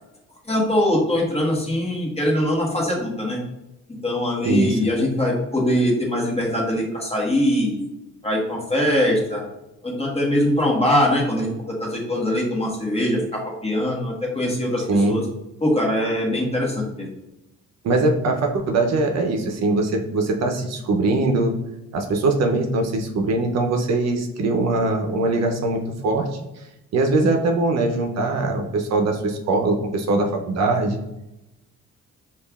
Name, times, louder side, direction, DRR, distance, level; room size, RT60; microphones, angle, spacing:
voice 1, 0.4-3.4 4.0-7.9 8.2-9.4 9.8-15.2 15.6-17.1, left 1 dB, 20° left, -2 dB, 1.2 m, -22 dB
voice 2, 4.4-4.8 14.9-15.2 17.8-21.5 21.9-26.3 26.9-31.0, right 2 dB, 60° right, 3 dB, 0.6 m, -21 dB
5.2 x 2.4 x 2.3 m, 0.93 s
cardioid pair, 90°, 30 cm